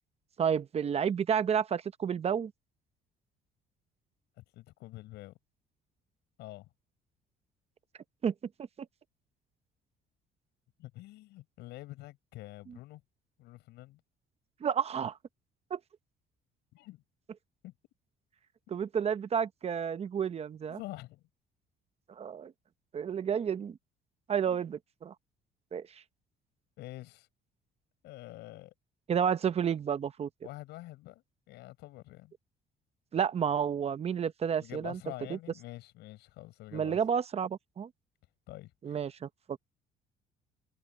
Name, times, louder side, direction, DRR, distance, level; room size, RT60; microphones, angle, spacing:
voice 1, 0.4-2.5 8.2-8.3 12.7-12.8 14.6-15.2 15.7-15.8 18.7-20.8 22.1-22.5 22.9-23.8 24.3-25.1 25.7-26.0 29.1-30.3 33.1-35.0 35.3-35.4 36.7-37.9 38.8-39.6, right 7 dB, 40° right, 0.8 m, -31 dB
voice 2, 4.4-5.3 6.4-6.7 10.8-13.0 13.4-14.0 16.7-17.0 17.6-17.7 18.7-18.8 20.7-21.2 24.5-24.7 26.8-27.3 28.0-28.7 30.4-32.3 34.6-37.0 38.5-39.0, left 17 dB, 85° left, 7.6 m, -47 dB
cardioid pair, 110°, 17 cm